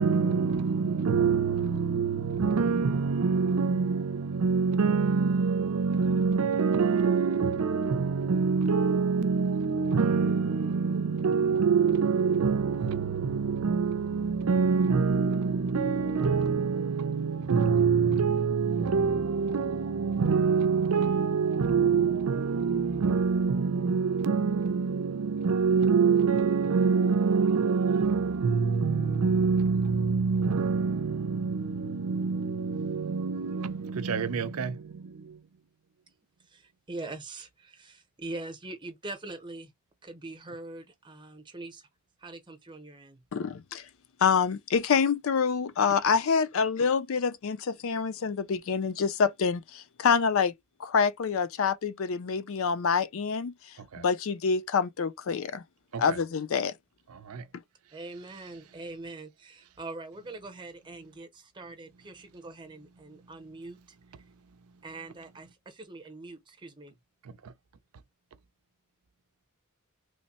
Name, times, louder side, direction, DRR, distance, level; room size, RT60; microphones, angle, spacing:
voice 1, 0.0-35.4 53.9-54.0 55.9-56.2 57.1-57.4 67.4-67.5, right 5 dB, 80° right, 0.5 m, -26 dB
voice 2, 36.5-39.7 40.0-41.8 42.2-43.2 57.9-64.0 64.8-66.9, right 2 dB, 20° right, 0.7 m, -43 dB
voice 3, 43.3-43.9 44.2-50.5 50.8-53.5 54.0-55.6 56.0-56.7, left 6 dB, 65° left, 0.4 m, -26 dB
3.2 x 2.1 x 4.1 m
head